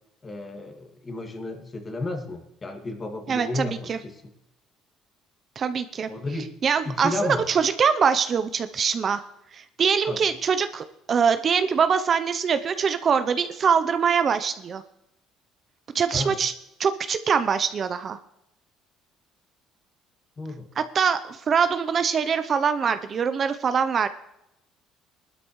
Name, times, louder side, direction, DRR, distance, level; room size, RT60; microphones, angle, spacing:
voice 1, 0.2-4.2 6.1-6.5 6.8-7.5 10.1-10.2 16.1-16.4 20.4-20.7, left 2 dB, 25° left, 3 dB, 2.2 m, -32 dB
voice 2, 3.3-4.0 5.6-6.1 6.6-9.2 9.5-14.8 15.9-16.5 16.8-18.2 20.8-24.1, right 6 dB, 40° right, 10 dB, 0.7 m, -23 dB
18.5 x 12.0 x 3.2 m, 0.85 s
cardioid pair, 110°, 0 cm